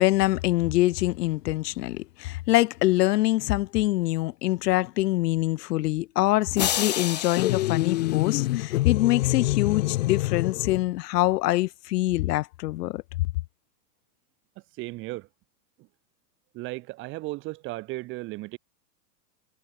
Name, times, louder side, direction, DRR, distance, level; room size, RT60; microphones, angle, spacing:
voice 1, 0.0-13.0, left 17 dB, 75° left, 0.7 m, -24 dB
sound 1, 6.6-8.9, left 11 dB, 30° left, 0.4 m, -31 dB
sound 2, 7.4-10.9, left 17 dB, 50° left, 1.1 m, -26 dB
voice 2, 14.8-15.3 15.8-15.9 16.5-18.6, right 20 dB, 25° right, 1.8 m, -35 dB
supercardioid pair, 175°, 48 cm